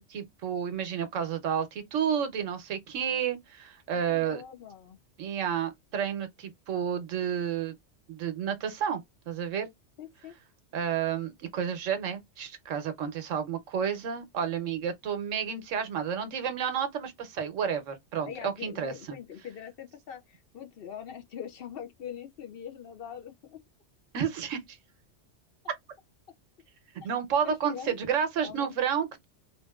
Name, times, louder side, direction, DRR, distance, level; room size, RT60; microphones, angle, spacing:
voice 1, 0.1-4.4 5.2-7.8 8.1-9.0 9.3-9.7 10.7-18.9 24.1-24.8 27.0-29.2, right 8 dB, 90° right, 1.2 m, -31 dB
voice 2, 3.9-5.0 10.0-10.4 18.3-23.6 27.0-27.1 27.4-28.0 28.4-28.7, left 8 dB, 60° left, 0.7 m, -43 dB
3.5 x 2.5 x 2.3 m
omnidirectional pair, 1.3 m